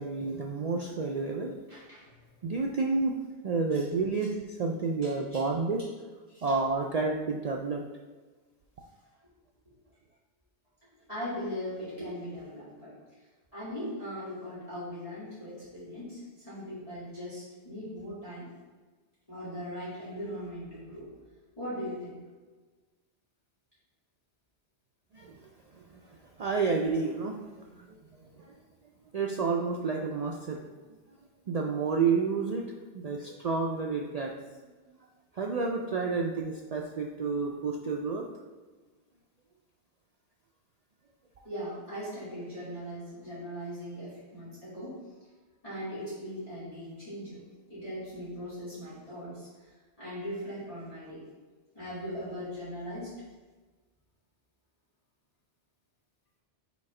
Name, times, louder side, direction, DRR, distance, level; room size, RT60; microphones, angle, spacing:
voice 1, 0.0-1.5 2.4-3.2 3.4-5.8 6.4-7.8 25.1-25.8 26.1-28.5 29.1-30.7 31.5-34.3 35.3-38.2, right 4 dB, 65° right, 0 dB, 0.4 m, -30 dB
voice 2, 1.7-2.1 3.7-3.8 5.0-5.4 6.3-6.6 11.1-13.3 13.5-18.5 19.3-21.1 21.6-22.2 41.4-45.0 45.6-47.4 47.7-51.3 51.7-53.2, equal, 30° left, -12 dB, 2.1 m, -39 dB
5.2 x 4.2 x 4.8 m, 1.3 s
omnidirectional pair, 1.2 m